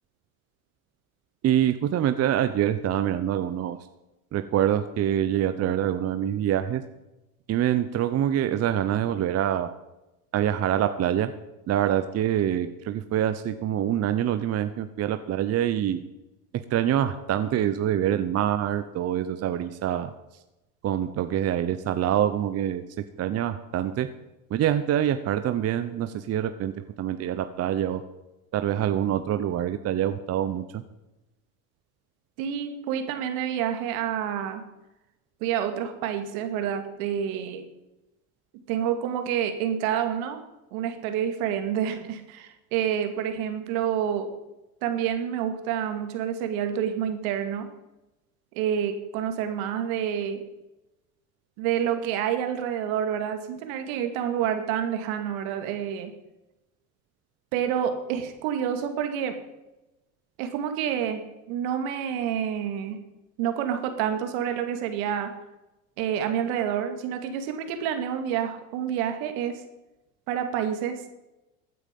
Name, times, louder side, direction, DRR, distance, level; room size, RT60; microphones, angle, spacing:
voice 1, 1.4-3.8 4.3-6.8 7.5-9.7 10.3-11.3 11.7-16.0 16.7-20.1 20.8-22.8 23.2-24.1 24.5-26.7 27.0-28.0 28.5-30.8, right 10 dB, 35° right, 10 dB, 0.8 m, -25 dB
voice 2, 32.4-34.6 35.4-37.6 38.7-40.4 40.7-44.3 44.8-47.7 48.5-50.4 51.6-56.1 57.5-59.4 60.4-63.0 63.4-65.3 66.0-69.6 70.3-71.0, right 9 dB, 70° right, 7 dB, 2.4 m, -28 dB
15.5 x 9.5 x 5.3 m, 0.97 s
supercardioid pair, 105°, 43 cm